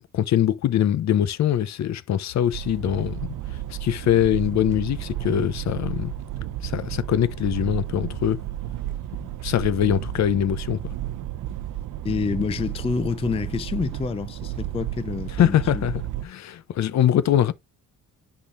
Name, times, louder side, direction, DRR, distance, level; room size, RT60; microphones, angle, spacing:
voice 1, 0.1-3.3 3.7-6.1 6.6-8.4 9.2-10.8 15.4-17.5, left 11 dB, 55° left, 0.7 m, -23 dB
sound 1, 2.5-16.3, right 13 dB, 65° right, 0.6 m, -32 dB
voice 2, 12.0-15.9, left 5 dB, 20° left, 0.4 m, -28 dB
10.0 x 3.8 x 2.5 m
cardioid pair, 125°, 34 cm